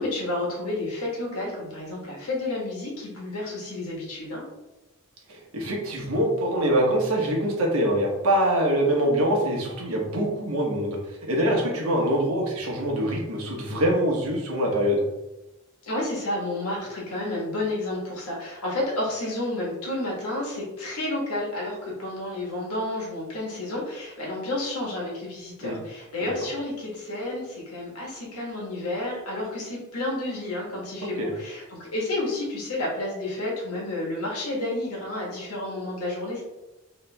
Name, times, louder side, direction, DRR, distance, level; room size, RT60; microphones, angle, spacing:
voice 1, 0.0-4.5 15.8-36.4, left 2 dB, 90° left, -3 dB, 1.4 m, -31 dB
voice 2, 5.3-11.0 11.3-15.0 25.6-25.8 26.2-26.3 31.2-31.3, right 1 dB, 80° right, -1 dB, 1.0 m, -24 dB
3.2 x 2.9 x 3.3 m, 0.99 s
head